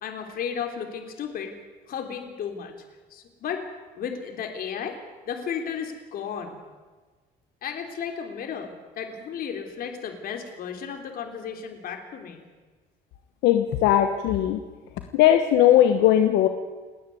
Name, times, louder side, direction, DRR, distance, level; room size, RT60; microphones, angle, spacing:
voice 1, 0.0-1.5 1.9-2.7 3.1-3.7 4.0-6.6 7.6-12.4, left 7 dB, 60° left, 4 dB, 3.4 m, -34 dB
voice 2, 13.4-14.6 15.1-16.5, left 11 dB, 90° left, 7 dB, 1.3 m, -18 dB
29.0 x 10.0 x 9.3 m, 1.4 s
cardioid pair, 110°, 17 cm